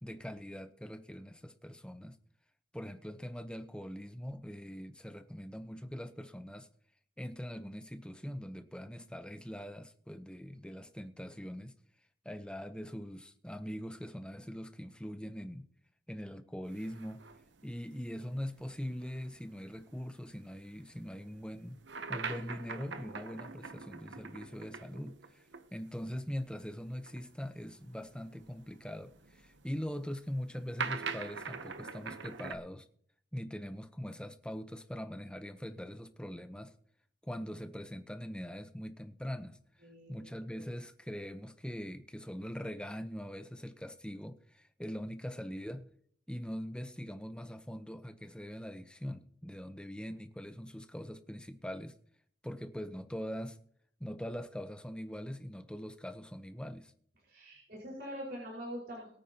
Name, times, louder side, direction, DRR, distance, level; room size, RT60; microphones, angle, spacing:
voice 1, 0.0-2.2 2.7-6.7 7.2-11.7 12.2-15.7 16.1-17.2 17.6-21.8 22.1-32.9 33.3-36.7 37.2-39.6 40.1-45.9 46.3-51.9 52.4-53.6 54.0-56.9, equal, 5° left, 0.8 m, -42 dB
sound 1, 16.7-25.7 25.9-26.0 26.9-32.6, right 5 dB, 70° right, 0.9 m, -44 dB
voice 2, 39.8-40.3 57.2-59.1, equal, 55° right, 5.1 m, -43 dB
22.5 x 9.0 x 2.9 m
head